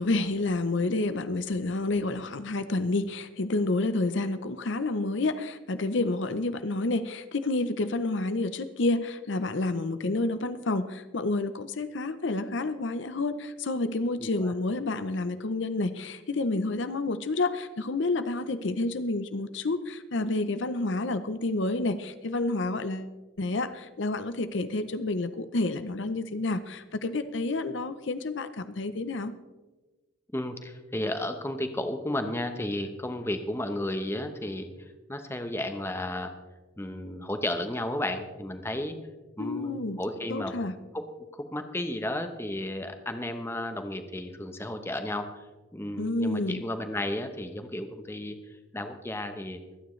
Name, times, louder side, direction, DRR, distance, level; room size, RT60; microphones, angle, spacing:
voice 1, 0.0-23.1 23.4-29.3 39.4-40.0 40.3-40.7 46.0-46.6, left 2 dB, 65° left, 11 dB, 0.7 m, -29 dB
voice 2, 14.2-14.5 30.3-34.7 35.1-36.3 36.8-39.0 39.4-40.5 40.9-41.1 41.3-45.5 45.7-48.4 48.7-49.6, left 1 dB, 10° left, 7 dB, 0.9 m, -33 dB
24.5 x 9.5 x 3.2 m, 1.2 s
head